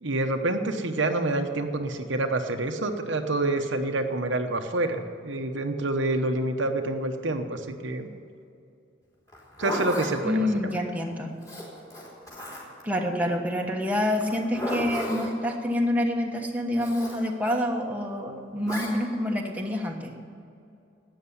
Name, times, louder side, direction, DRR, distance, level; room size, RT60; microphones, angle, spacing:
voice 1, 0.0-8.1 9.6-10.7, right 2 dB, 65° right, 5 dB, 1.0 m, -27 dB
Zipper (clothing), 9.3-10.1 11.4-12.8 14.2-15.3 16.8-17.2 18.6-18.9, left 1 dB, 20° left, 3.6 m, -33 dB
voice 2, 10.2-11.3 12.8-20.1, left 1 dB, 10° right, 0 dB, 1.2 m, -27 dB
13.0 x 9.1 x 9.7 m, 2.5 s
head